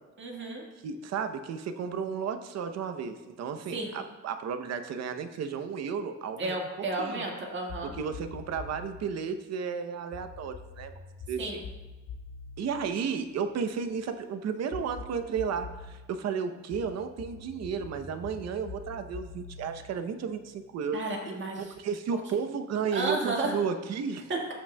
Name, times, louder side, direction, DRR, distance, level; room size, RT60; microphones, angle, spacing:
voice 1, 0.2-0.6 3.7-4.0 6.4-7.9 11.4-11.6 20.9-21.7 22.9-23.5 24.3-24.5, right 2 dB, 40° right, 0 dB, 1.7 m, -32 dB
voice 2, 0.8-6.6 7.0-7.2 8.0-10.9 11.3-11.6 12.6-21.0 21.7-24.3, right 6 dB, 60° right, 9 dB, 0.7 m, -33 dB
sound 1, 7.7-9.0 10.1-13.8 14.7-16.0 16.7-20.6, left 4 dB, 85° left, 2.8 m, -45 dB
14.0 x 6.2 x 2.2 m, 1.2 s
cardioid pair, 140°, 29 cm